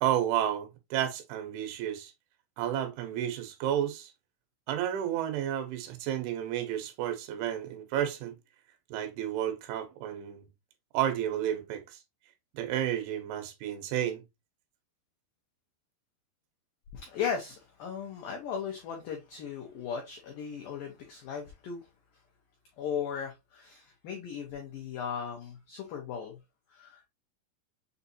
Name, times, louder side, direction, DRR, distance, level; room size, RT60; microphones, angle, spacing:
voice 1, 0.0-2.1 2.6-4.1 4.7-8.4 8.9-10.5 10.9-12.0 12.6-14.2, right 11 dB, 90° right, 3.3 m, -31 dB
voice 2, 16.9-21.9 22.8-26.4 26.7-27.0, left 7 dB, 85° left, 1.9 m, -37 dB
7.3 x 2.7 x 2.6 m
omnidirectional pair, 5.2 m